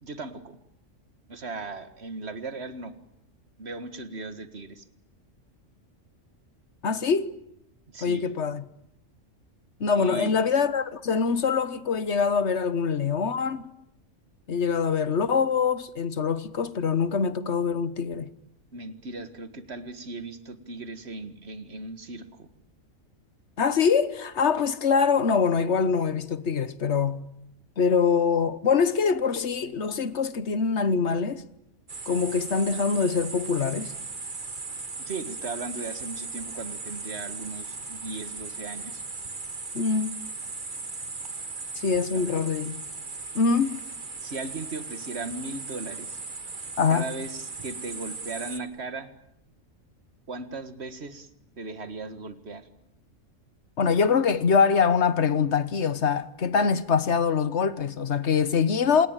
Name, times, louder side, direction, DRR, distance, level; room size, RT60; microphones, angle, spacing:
voice 1, 0.0-0.6 1.3-2.9 3.6-4.9 7.9-8.2 10.0-10.4 18.7-22.5 35.0-39.0 42.1-42.4 44.2-46.2 46.9-49.1 50.3-51.3 51.6-52.7, right 3 dB, 55° right, 2.0 m, -37 dB
voice 2, 6.8-7.3 8.0-8.6 9.8-13.7 14.5-18.3 23.6-27.2 27.8-31.4 32.1-33.9 39.7-40.1 41.8-42.8 43.3-43.8 46.8-47.0 53.8-59.1, left 5 dB, 60° left, 1.5 m, -24 dB
sound 1, 31.9-48.6, right 4 dB, 40° right, 1.7 m, -38 dB
27.5 x 19.5 x 9.0 m
omnidirectional pair, 1.4 m